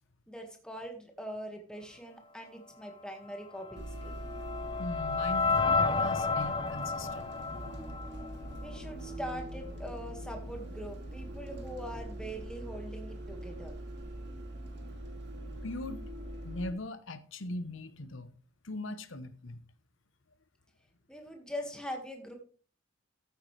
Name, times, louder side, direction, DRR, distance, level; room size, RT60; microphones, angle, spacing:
voice 1, 0.3-4.2 8.6-13.8 21.1-22.3, equal, 5° left, 1.8 m, -42 dB
sound 1, 3.6-8.8, left 4 dB, 25° left, 0.6 m, -31 dB
Bus, 3.8-16.7, right 1 dB, 55° right, 2.2 m, -43 dB
voice 2, 4.8-7.3 15.6-16.0 16.4-18.3 18.6-19.6, left 1 dB, 75° left, 0.9 m, -40 dB
sound 2, 8.3-11.4, equal, 25° right, 5.8 m, -55 dB
14.0 x 8.1 x 3.3 m
head